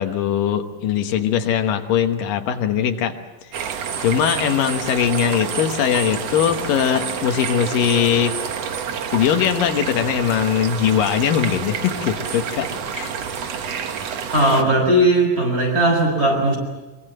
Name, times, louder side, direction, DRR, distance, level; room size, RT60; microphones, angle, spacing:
voice 1, 0.0-3.1 4.0-8.4 9.1-13.1, left 9 dB, 80° left, 6 dB, 2.9 m, -21 dB
sound 1, 3.5-14.6, right 7 dB, 60° right, 2.2 m, -28 dB
voice 2, 14.3-16.6, right 1 dB, 25° right, 1 dB, 6.9 m, -17 dB
25.0 x 23.0 x 7.7 m, 1.2 s
omnidirectional pair, 3.9 m